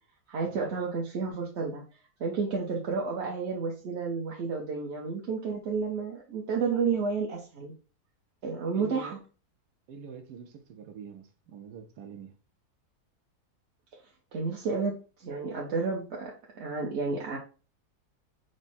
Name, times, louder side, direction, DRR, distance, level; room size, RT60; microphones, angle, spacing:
voice 1, 0.3-1.8 2.2-7.7 8.4-9.2 14.3-17.4, right 5 dB, 55° right, 0.9 m, -31 dB
voice 2, 8.7-9.2 9.9-12.3, right 7 dB, 85° right, 1.2 m, -45 dB
4.7 x 2.1 x 4.2 m
omnidirectional pair, 1.7 m